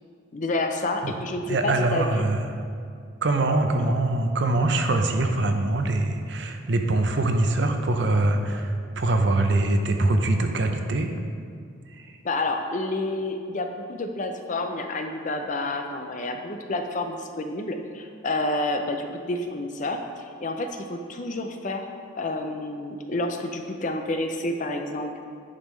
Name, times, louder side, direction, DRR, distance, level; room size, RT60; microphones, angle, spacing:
voice 1, 0.3-2.3 12.2-21.8 22.2-25.2, left 2 dB, 40° left, 5 dB, 0.5 m, -29 dB
voice 2, 1.5-2.4 3.2-11.1 12.0-12.1, right 2 dB, 60° right, 5 dB, 0.6 m, -23 dB
10.0 x 5.4 x 3.2 m, 2.3 s
head